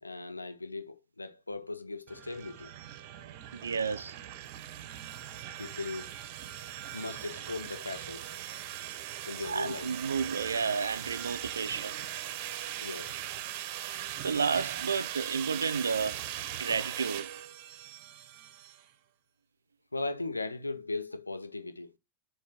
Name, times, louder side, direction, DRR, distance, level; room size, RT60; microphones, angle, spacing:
voice 1, 0.0-2.7 5.6-6.1 6.9-8.3 9.3-9.9 12.8-13.2 19.9-21.9, left 3 dB, 80° left, 0.5 m, -38 dB
sound 1, 2.1-18.8, right 12 dB, 45° right, 0.9 m, -40 dB
voice 2, 3.5-4.2 9.4-12.0 13.8-13.9 14.2-16.2 16.6-17.3, right 5 dB, 75° right, 0.4 m, -31 dB
7.0 x 2.6 x 5.7 m
figure-of-eight pair, 90°, 0 cm